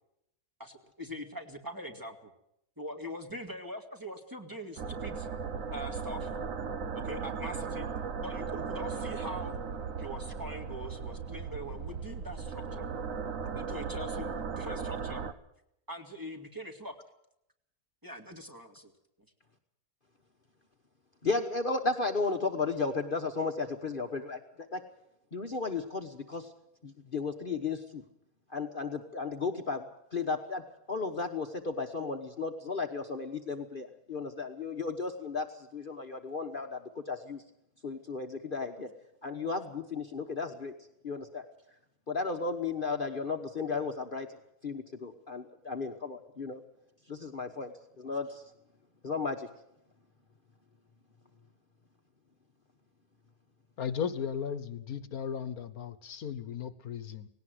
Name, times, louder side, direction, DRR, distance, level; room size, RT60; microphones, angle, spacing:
voice 1, 0.6-2.3 2.8-5.3 5.7-6.3 7.0-7.9 8.2-9.6 10.0-12.8 13.4-15.2 15.9-16.9 18.0-18.9, equal, 15° right, 3 dB, 2.1 m, -42 dB
sound 1, 4.8-15.3, right 5 dB, 60° right, 1.4 m, -37 dB
voice 2, 21.2-24.4 24.7-24.8 25.3-26.5 26.8-28.0 28.5-29.8 30.1-30.6 30.9-35.4 35.7-36.8 37.1-37.4 37.8-38.9 39.2-40.7 41.0-41.4 42.1-44.3 44.6-46.6 47.1-47.7 48.0-48.4 49.0-49.5, left 4 dB, 35° left, 4 dB, 1.3 m, -34 dB
voice 3, 53.8-57.3, left 7 dB, 70° left, 13 dB, 1.5 m, -36 dB
19.0 x 17.5 x 7.9 m, 0.78 s
omnidirectional pair, 1.6 m